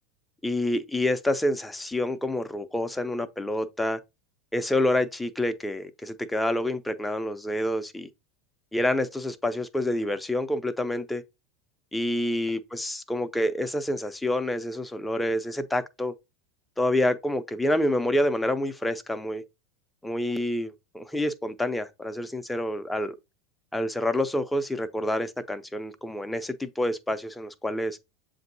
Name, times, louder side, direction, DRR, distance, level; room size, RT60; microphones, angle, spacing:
voice 1, 0.4-4.0 4.5-8.1 8.7-11.2 11.9-16.1 16.8-19.4 20.0-23.2 23.7-28.0, left 1 dB, 5° left, 0.6 m, -28 dB
7.2 x 2.6 x 2.7 m
hypercardioid pair, 100°, 0 cm